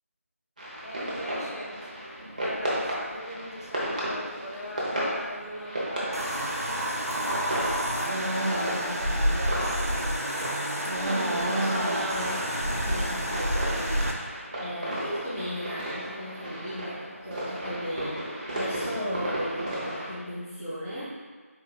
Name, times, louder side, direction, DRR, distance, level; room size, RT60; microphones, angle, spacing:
sound 1, 0.6-20.1, right 1 dB, 30° right, 0.9 m, -34 dB
voice 1, 0.8-1.8 2.4-6.3 6.9-9.7, equal, 75° left, -3 dB, 1.0 m, -40 dB
sound 2, 6.1-14.1, equal, 90° right, 0.8 m, -28 dB
voice 2, 10.9-21.0, equal, 5° left, -16 dB, 0.4 m, -36 dB
4.4 x 2.7 x 3.9 m, 1.5 s
figure-of-eight pair, 165°, 8 cm